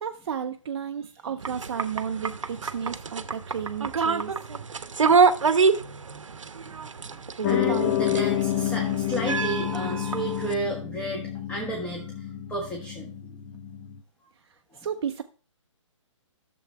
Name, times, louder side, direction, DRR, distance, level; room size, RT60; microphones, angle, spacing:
voice 1, 0.0-4.3 10.6-10.8 14.7-15.2, right 7 dB, 55° right, 6 dB, 0.6 m, -33 dB
sound 1, 1.4-10.5, right 5 dB, 75° right, 0.9 m, -26 dB
Piano, 7.4-14.0, left 12 dB, 25° left, 0.7 m, -29 dB
voice 2, 7.5-13.4, right 2 dB, 5° left, -1 dB, 1.4 m, -33 dB
11.0 x 7.0 x 3.4 m, 0.39 s
figure-of-eight pair, 140°, 16 cm